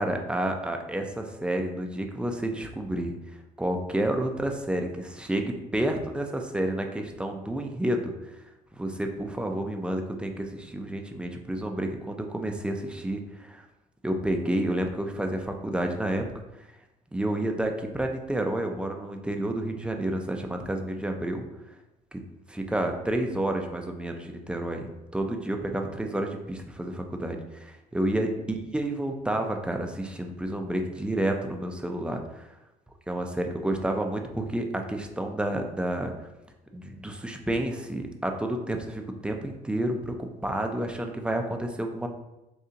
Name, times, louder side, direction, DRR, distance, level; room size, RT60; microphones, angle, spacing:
voice 1, 0.0-3.1 3.6-8.1 8.7-13.6 14.0-16.2 17.1-21.4 22.1-22.2 22.5-32.5 33.1-36.1 36.7-42.1, right 1 dB, 5° right, 3 dB, 0.5 m, -30 dB
6.5 x 2.4 x 2.8 m, 0.95 s
cardioid pair, 110°, 17 cm